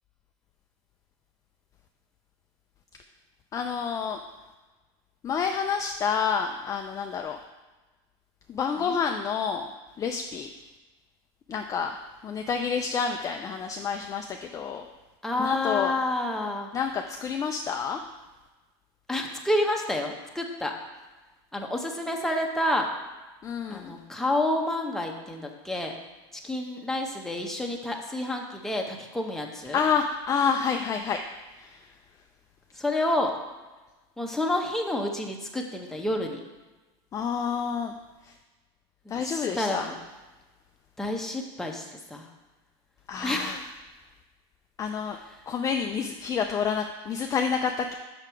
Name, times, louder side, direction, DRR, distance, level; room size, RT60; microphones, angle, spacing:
voice 1, 3.5-4.2 5.2-7.4 8.5-9.7 10.0-10.5 11.5-12.0 12.2-14.9 15.4-15.9 16.7-18.0 23.4-24.0 29.7-31.2 31.6-31.8 37.1-37.9 39.1-39.9 43.1-43.6 44.8-45.2 45.5-47.9, left 6 dB, 25° left, 4 dB, 0.4 m, -28 dB
voice 2, 15.2-16.7 19.1-20.7 21.5-22.9 23.7-25.9 26.4-29.8 32.8-33.3 34.2-36.4 39.1-39.9 41.0-42.3 43.2-43.6, left 1 dB, 5° left, 1 dB, 0.9 m, -29 dB
5.8 x 5.8 x 4.5 m, 1.2 s
supercardioid pair, 130°, 14 cm